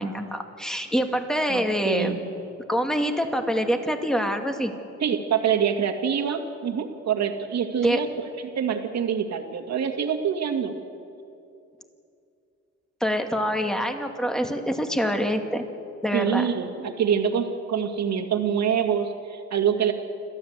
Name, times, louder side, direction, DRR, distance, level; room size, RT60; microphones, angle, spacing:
voice 1, 0.0-2.2 2.7-4.7 7.8-8.0 13.0-15.6 16.0-16.5, equal, ahead, 5 dB, 2.3 m, -25 dB
voice 2, 1.5-2.2 5.0-8.1 8.4-10.7 16.1-19.9, right 7 dB, 60° right, 5 dB, 2.3 m, -25 dB
29.0 x 13.0 x 8.2 m, 2.6 s
cardioid pair, 90°, 30 cm